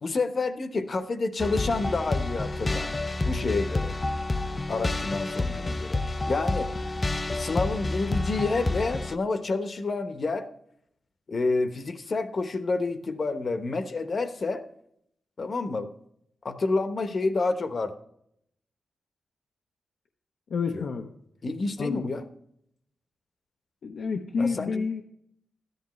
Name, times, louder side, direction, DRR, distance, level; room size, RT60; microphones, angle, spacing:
voice 1, 0.0-2.9 3.2-3.9 4.7-6.0 6.3-6.7 7.3-10.5 11.3-14.6 15.4-15.9 16.4-17.9 20.7-20.8 21.4-22.2 24.4-24.8, left 3 dB, 50° left, 8 dB, 1.0 m, -29 dB
sound 1, 1.4-9.2, left 2 dB, 25° left, 0.5 m, -29 dB
voice 2, 20.5-21.1 21.8-22.1 23.8-25.0, left 5 dB, 75° left, 3 dB, 0.8 m, -29 dB
13.0 x 11.0 x 3.2 m, 0.73 s
cardioid pair, 85°, 0 cm